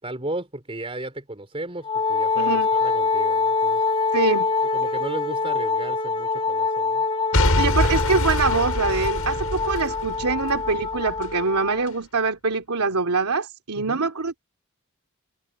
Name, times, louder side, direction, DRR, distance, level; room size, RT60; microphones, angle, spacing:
voice 1, 0.0-3.8 4.7-7.1 13.8-14.0, right 1 dB, 25° right, 4.2 m, -35 dB
Wind instrument woodwind instrument, 1.8-11.8, left 4 dB, 25° left, 1.9 m, -25 dB
voice 2, 2.4-2.7 4.1-4.5 7.5-14.4, right 4 dB, 90° right, 2.7 m, -24 dB
Boom / Shatter / Crushing, 7.3-11.3 11.9-12.0, left 1 dB, 80° left, 7.0 m, -25 dB
head